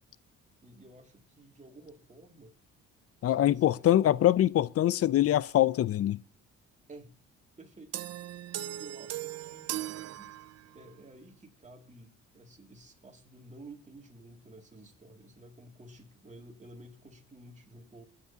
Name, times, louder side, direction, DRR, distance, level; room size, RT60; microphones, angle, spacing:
voice 1, 0.6-2.6 3.3-4.4 6.9-7.1 7.6-7.9 8.5-10.3 10.7-18.0, right 2 dB, 25° right, 2.5 m, -52 dB
voice 2, 3.2-6.2, left 12 dB, 50° left, 0.5 m, -24 dB
sound 1, 7.9-10.9, right 13 dB, 55° right, 0.5 m, -38 dB
24.5 x 9.5 x 2.8 m
cardioid pair, 90°, 30 cm